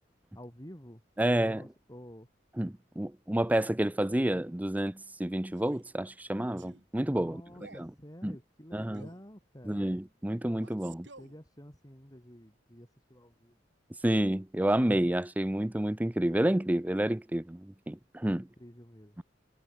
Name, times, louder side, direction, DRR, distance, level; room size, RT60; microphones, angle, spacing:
voice 1, 0.3-1.0 1.4-2.3 7.1-9.9 11.2-13.6 18.3-19.2, equal, 20° left, 6.7 m, -50 dB
voice 2, 1.2-1.6 2.6-7.4 7.7-7.9 8.2-8.4 8.7-9.1 9.7-11.1 14.0-18.5, right 1 dB, 10° right, 0.5 m, -29 dB
Male speech man speaking, 5.5-5.9 6.6-6.9 7.5-7.9 8.9-9.3 10.6-11.4, right 3 dB, 70° right, 7.7 m, -53 dB
head